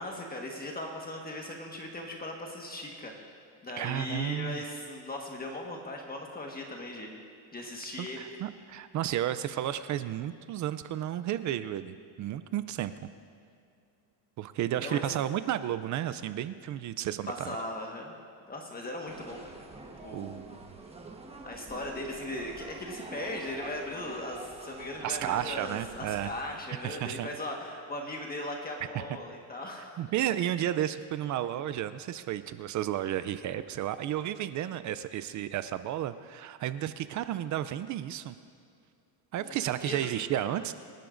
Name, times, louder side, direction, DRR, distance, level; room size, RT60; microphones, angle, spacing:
voice 1, 0.0-3.2 3.6-7.1 7.5-8.4 12.2-12.3 14.8-15.1 17.3-18.1 18.5-19.6 20.0-20.4 21.4-30.0 39.4-40.7, left 1 dB, 20° left, 0 dB, 1.4 m, -38 dB
voice 2, 3.8-4.6 8.0-12.9 14.4-17.6 20.1-20.7 25.0-26.3 26.8-27.3 29.0-29.1 30.0-38.4 39.3-40.7, right 12 dB, 40° right, 13 dB, 0.4 m, -32 dB
sound 1, 19.1-26.4, right 3 dB, 15° right, 1.2 m, -46 dB
27.5 x 12.0 x 2.6 m, 2.4 s
cardioid pair, 130°, 46 cm